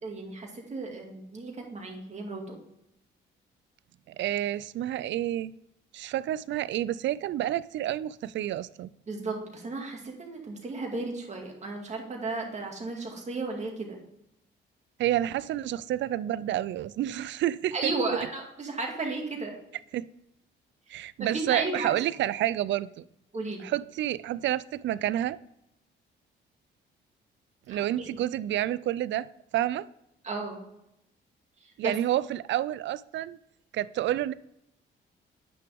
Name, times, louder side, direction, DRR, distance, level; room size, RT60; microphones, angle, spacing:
voice 1, 0.0-2.6 9.1-14.0 17.7-19.6 21.2-21.9 23.3-23.6 27.7-28.2 30.2-30.6 31.8-31.9, right 3 dB, 35° right, 1 dB, 2.3 m, -34 dB
voice 2, 4.1-5.5 5.9-8.9 15.0-17.9 19.9-20.0 20.9-23.0 23.6-25.4 27.7-29.3 29.5-29.9 31.8-33.4 33.7-34.3, right 13 dB, 65° right, 18 dB, 0.4 m, -29 dB
9.2 x 6.0 x 3.5 m, 0.83 s
cardioid pair, 90°, 20 cm